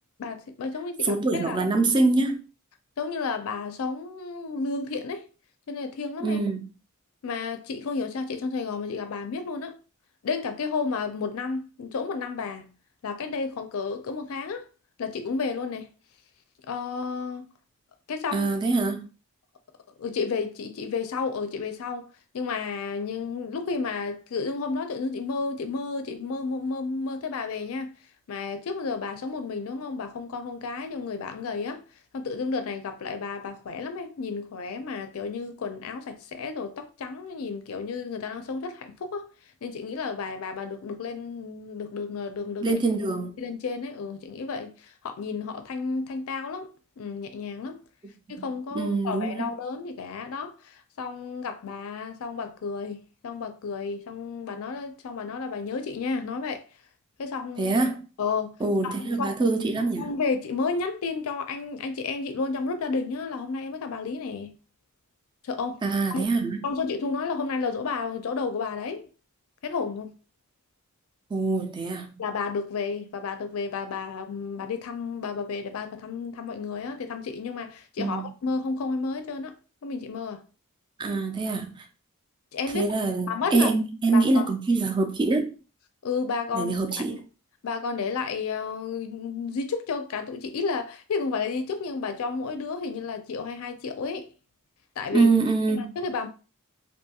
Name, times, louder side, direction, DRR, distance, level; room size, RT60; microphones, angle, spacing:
voice 1, 0.2-1.6 3.0-5.3 5.7-6.4 7.2-9.8 10.2-12.7 13.0-14.7 15.0-15.9 16.7-17.5 18.1-18.5 20.0-22.1 22.3-27.9 28.3-31.8 32.1-39.3 39.6-42.8 43.4-47.8 48.3-56.6 57.2-57.7 58.2-58.5 58.8-59.3 60.0-64.5 65.4-65.8 66.1-66.4 66.6-69.1 69.6-70.1 72.2-79.6 79.8-80.4 82.5-82.9 83.3-83.7 84.1-84.5 86.0-86.7 87.1-87.2 87.6-94.3 95.0-95.3 95.7-96.3, left 4 dB, 70° left, 0.4 m, -32 dB
voice 2, 1.0-2.4 6.2-6.7 18.3-19.1 42.6-43.3 48.7-49.5 57.6-58.0 58.6-60.1 65.8-66.6 71.3-72.2 78.0-78.3 81.0-81.9 82.7-85.5 86.5-87.1 95.1-95.9, right 3 dB, 20° right, 0.3 m, -24 dB
2.6 x 2.3 x 2.8 m
head